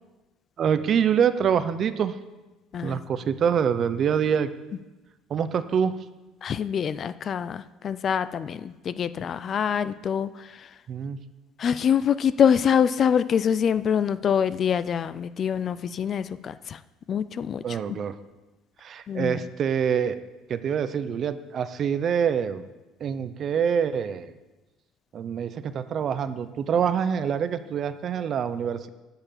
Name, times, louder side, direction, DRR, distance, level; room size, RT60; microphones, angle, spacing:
voice 1, 0.6-2.2 2.8-4.5 5.3-5.9 10.9-11.2 17.6-18.2 18.8-20.2 20.5-22.7 23.0-24.3 25.1-28.9, right 7 dB, 40° right, 12 dB, 0.6 m, -25 dB
voice 2, 6.4-10.8 11.6-16.8 17.1-18.0 19.1-19.4, left 8 dB, 35° left, 15 dB, 0.3 m, -25 dB
10.5 x 5.7 x 7.3 m, 1.1 s
cardioid pair, 140°, 0 cm